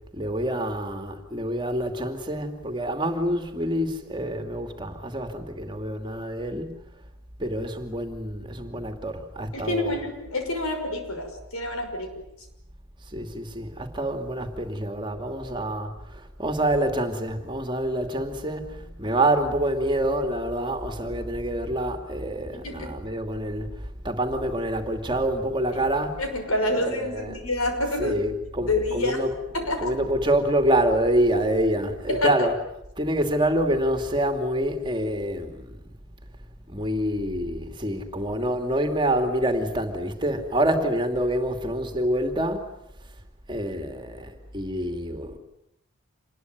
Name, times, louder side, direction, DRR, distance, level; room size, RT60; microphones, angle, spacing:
voice 1, 0.1-6.9 7.4-10.0 13.1-23.7 24.0-26.4 26.7-27.4 27.9-32.5 33.0-35.7 36.7-42.7 43.5-45.4, right 1 dB, 20° right, 2.6 m, -27 dB
voice 2, 9.5-12.1 22.5-22.9 26.2-28.2 28.6-29.2 29.5-29.9 32.1-32.3, left 1 dB, 80° left, 6.0 m, -27 dB
27.0 x 21.0 x 9.4 m
head